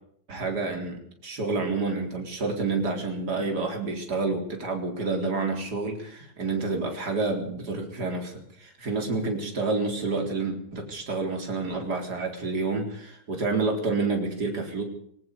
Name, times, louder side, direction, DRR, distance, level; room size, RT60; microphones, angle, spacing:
voice 1, 0.3-14.8, right 3 dB, 45° right, 3 dB, 4.5 m, -29 dB
21.0 x 18.5 x 6.8 m, 0.67 s
omnidirectional pair, 2.3 m